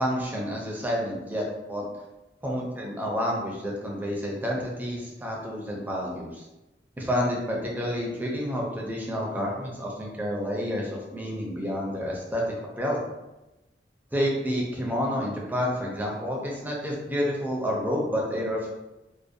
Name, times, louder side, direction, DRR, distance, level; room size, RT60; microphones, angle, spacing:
voice 1, 0.0-1.9 2.4-6.3 7.0-13.0 14.1-18.7, equal, 10° right, -2 dB, 0.4 m, -29 dB
2.6 x 2.0 x 2.4 m, 1.0 s
head